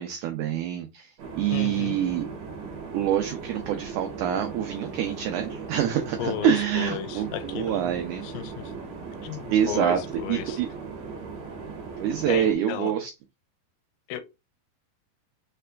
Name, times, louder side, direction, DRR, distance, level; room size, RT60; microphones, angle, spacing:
voice 1, 0.0-2.3 2.9-8.2 9.5-10.0 10.3-10.7 12.0-13.1, right 10 dB, 85° right, 1.7 m, -26 dB
sound 1, 1.2-12.5, right 4 dB, 60° right, 2.0 m, -38 dB
voice 2, 1.5-1.9 6.2-7.9 8.2-8.7 9.2-10.6 12.3-12.9 14.1-14.2, left 12 dB, 85° left, 2.4 m, -34 dB
5.8 x 3.3 x 2.3 m
omnidirectional pair, 4.3 m